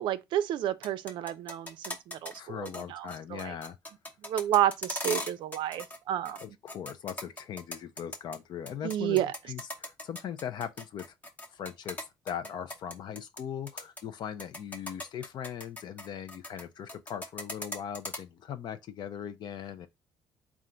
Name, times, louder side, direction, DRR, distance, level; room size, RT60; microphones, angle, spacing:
voice 1, 0.0-3.5 4.2-6.4 8.8-9.3, right 12 dB, 70° right, 0.4 m, -30 dB
sound 1, 0.7-2.4 2.6-2.8 3.1-6.0 6.2-8.4 8.7-13.4 13.7-14.0 14.4-16.6 16.9-18.2, left 1 dB, 20° left, 1.0 m, -39 dB
voice 2, 2.4-3.8 6.4-9.2 9.5-11.0 11.5-19.9, left 9 dB, 60° left, 0.6 m, -39 dB
3.7 x 2.5 x 4.2 m
cardioid pair, 95°, 8 cm